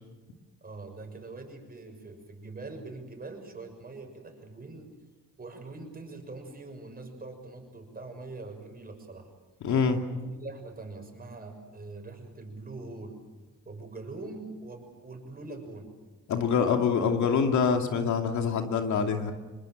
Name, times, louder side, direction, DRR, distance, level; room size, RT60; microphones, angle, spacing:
voice 1, 0.6-4.9 5.4-9.3 10.1-13.2 13.6-15.9, right 3 dB, 30° right, 4 dB, 6.7 m, -43 dB
voice 2, 9.6-10.0 16.3-19.3, left 6 dB, 70° left, 5 dB, 2.6 m, -25 dB
26.0 x 21.5 x 7.7 m, 1.2 s
cardioid pair, 90°, 30 cm